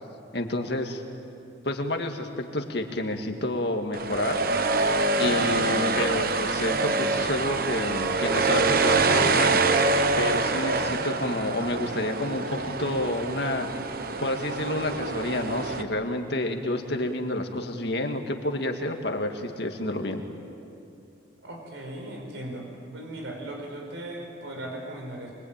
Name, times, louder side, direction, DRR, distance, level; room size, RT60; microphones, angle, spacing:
voice 1, 0.3-1.0 1.6-4.4 5.2-13.7 14.2-20.2, left 1 dB, 55° left, 4 dB, 2.1 m, -29 dB
sound 1, 3.9-15.8, right 3 dB, 50° right, 1.1 m, -25 dB
voice 2, 21.4-25.3, right 1 dB, 85° right, 1 dB, 4.7 m, -38 dB
24.5 x 24.0 x 9.0 m, 2.7 s
head